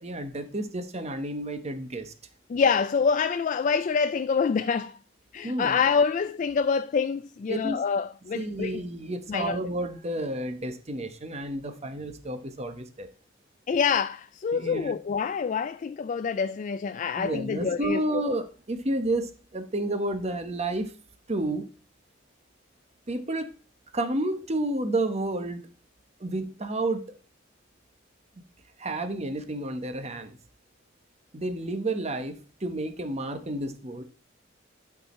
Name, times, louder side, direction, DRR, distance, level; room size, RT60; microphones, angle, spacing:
voice 1, 0.0-2.1 5.4-5.8 7.5-7.8 8.3-13.1 14.5-14.9 17.2-20.9 21.3-21.7 23.1-23.5 23.9-25.6 26.2-27.1 28.8-30.3 31.3-32.3 32.6-34.0, right 1 dB, 35° right, 1.0 m, -30 dB
voice 2, 2.5-5.0 5.3-8.8 9.3-9.6 13.7-18.2, left 5 dB, 40° left, 0.3 m, -26 dB
11.5 x 4.7 x 4.2 m
head